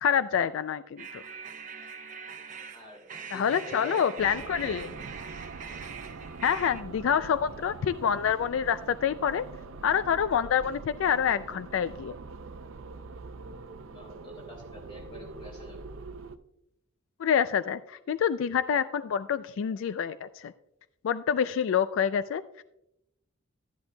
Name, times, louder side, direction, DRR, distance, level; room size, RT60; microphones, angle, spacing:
voice 1, 0.0-1.2 3.3-4.9 6.4-9.5 9.8-12.1 17.2-20.5 21.0-22.4, left 8 dB, 75° left, 14 dB, 0.3 m, -27 dB
sound 1, 1.0-6.8, right 6 dB, 35° right, 0.7 m, -43 dB
voice 2, 2.7-4.9 13.9-15.8, left 1 dB, 25° left, 0 dB, 3.3 m, -46 dB
sound 2, 4.2-16.4, right 3 dB, 70° right, 0.5 m, -44 dB
12.5 x 10.5 x 2.2 m, 0.81 s
head